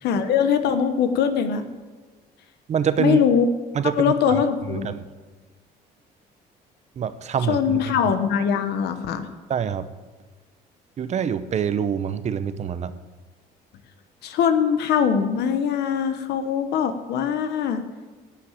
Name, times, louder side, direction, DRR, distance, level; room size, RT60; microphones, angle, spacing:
voice 1, 0.0-1.6 3.0-3.5 3.9-4.9 7.5-9.3 14.2-17.8, left 7 dB, 80° left, 9 dB, 1.0 m, -22 dB
voice 2, 2.7-3.2 3.7-4.4 4.7-5.0 7.0-8.0 9.5-9.9 11.0-12.9, right 8 dB, 40° right, 13 dB, 0.7 m, -25 dB
11.5 x 5.8 x 8.7 m, 1.4 s
cardioid pair, 110°, 17 cm